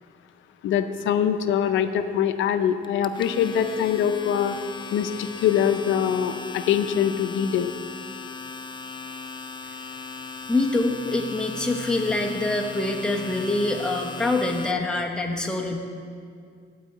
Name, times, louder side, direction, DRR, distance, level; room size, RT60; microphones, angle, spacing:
voice 1, 0.6-4.6 4.9-7.8, left 9 dB, 85° left, 10 dB, 0.5 m, -23 dB
Domestic sounds home sounds, 2.8-14.7, left 4 dB, 25° left, 0.3 m, -37 dB
voice 2, 10.5-15.8, left 2 dB, 5° left, -1 dB, 1.0 m, -25 dB
11.5 x 4.7 x 7.7 m, 2.2 s
cardioid pair, 130°, 19 cm